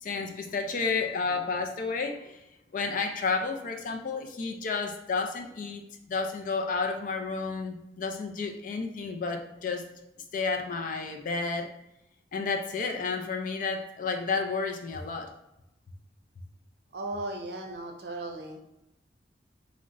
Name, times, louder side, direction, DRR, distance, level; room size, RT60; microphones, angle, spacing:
voice 1, 0.0-2.4 2.7-9.8 10.3-11.7 12.3-15.3, left 4 dB, 50° left, 4 dB, 0.4 m, -31 dB
voice 2, 16.9-18.7, right 2 dB, 65° right, 2 dB, 0.6 m, -36 dB
3.8 x 2.1 x 2.3 m, 0.89 s
head